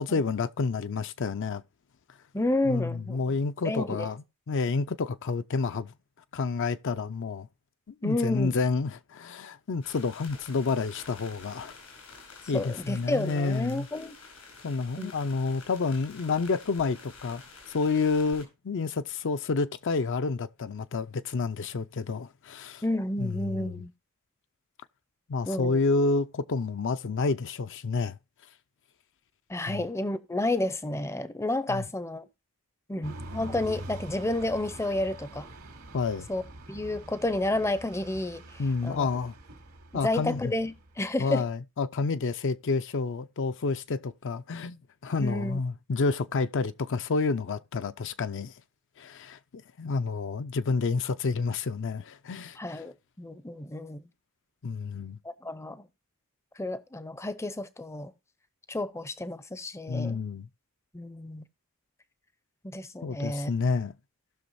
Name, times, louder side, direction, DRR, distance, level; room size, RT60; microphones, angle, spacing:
voice 1, 0.0-1.6 2.6-5.9 6.3-7.5 7.9-11.7 12.5-13.9 14.6-17.4 17.7-22.8 23.2-23.8 25.3-28.2 29.7-29.8 31.7-31.8 35.9-36.3 38.6-39.3 39.9-40.5 41.2-48.5 49.0-49.4 49.8-52.8 54.6-55.2 59.9-60.5 63.0-63.9, left 4 dB, 55° left, 0.5 m, -29 dB
voice 2, 2.3-3.2 3.6-4.1 8.0-8.6 12.5-14.1 15.0-15.1 22.8-23.9 25.5-25.8 29.5-32.2 32.9-35.5 36.3-36.4 36.7-38.4 38.8-39.1 39.9-41.4 45.2-45.6 52.6-54.0 55.2-55.9 56.6-58.1 58.7-60.2 60.9-61.4 62.6-63.5, left 1 dB, 10° left, 0.5 m, -31 dB
sound 1, 9.8-18.4, left 4 dB, 90° left, 5.0 m, -49 dB
sound 2, 33.0-41.0, right 1 dB, 90° right, 2.6 m, -44 dB
18.0 x 6.2 x 2.6 m
head